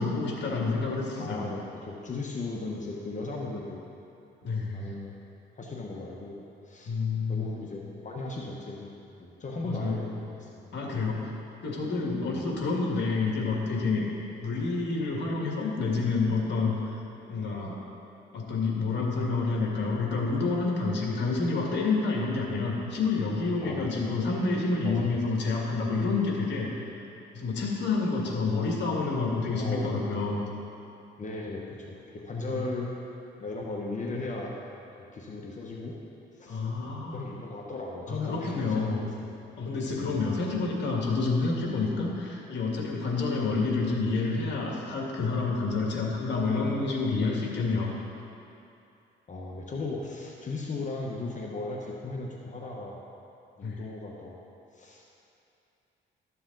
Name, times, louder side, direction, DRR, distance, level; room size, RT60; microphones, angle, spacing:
voice 1, 0.0-1.5 4.4-5.0 6.9-7.5 9.6-10.0 10.7-11.3 11.6-14.1 14.4-17.0 17.3-17.8 18.3-26.9 27.3-30.4 32.5-32.7 36.5-37.2 38.1-39.0 39.6-47.9 53.6-53.8, left 3 dB, 65° left, -2 dB, 2.0 m, -28 dB
voice 2, 1.2-3.8 4.7-5.2 5.6-6.4 6.6-6.9 7.3-8.9 9.2-10.5 10.9-11.0 12.3-12.4 23.6-24.0 24.8-25.1 28.2-28.5 29.6-29.9 31.2-32.9 33.4-34.5 35.1-36.0 36.3-39.3 40.0-40.2 49.3-53.0 53.6-54.4 54.7-55.0, left 3 dB, 40° left, -2 dB, 1.1 m, -37 dB
13.0 x 7.0 x 4.0 m, 2.7 s
cardioid pair, 90°, 20 cm